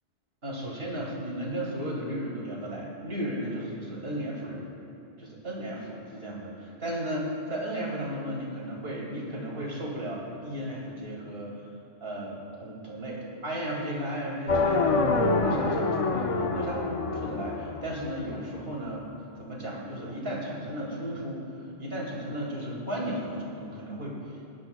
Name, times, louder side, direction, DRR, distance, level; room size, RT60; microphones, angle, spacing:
voice 1, 0.4-4.7 5.2-11.6 12.0-19.1 19.4-21.4 21.8-24.2, equal, 60° right, -4 dB, 2.7 m, -34 dB
sound 1, 14.5-18.5, left 3 dB, 40° left, 0.5 m, -27 dB
20.5 x 10.5 x 2.3 m, 2.7 s
omnidirectional pair, 1.2 m